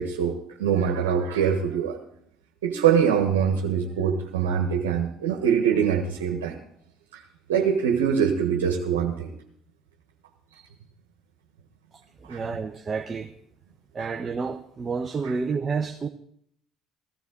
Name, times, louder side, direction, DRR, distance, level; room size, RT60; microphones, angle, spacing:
voice 1, 0.0-2.0 2.6-6.5 7.5-9.3 12.3-12.4, right 7 dB, 85° right, 1.5 m, -23 dB
voice 2, 12.2-13.3 13.9-16.1, right 5 dB, 35° right, 1.0 m, -29 dB
16.0 x 14.5 x 4.0 m
hypercardioid pair, 60°, 0 cm